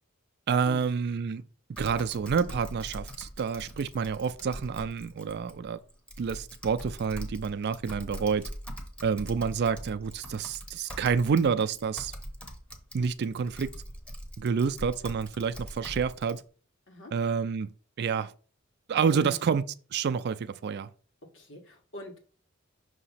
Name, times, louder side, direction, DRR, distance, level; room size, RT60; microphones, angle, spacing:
voice 1, 0.5-1.4 1.8-5.8 6.2-8.5 9.0-12.1 12.9-13.7 14.4-16.4 17.1-17.7 18.0-18.3 18.9-19.6 19.9-20.9, right 6 dB, 50° right, 0.4 m, -28 dB
Typing, 1.8-16.4, equal, 5° left, 0.8 m, -42 dB
voice 2, 21.3-22.2, left 2 dB, 60° left, 1.5 m, -43 dB
6.0 x 2.9 x 5.6 m
head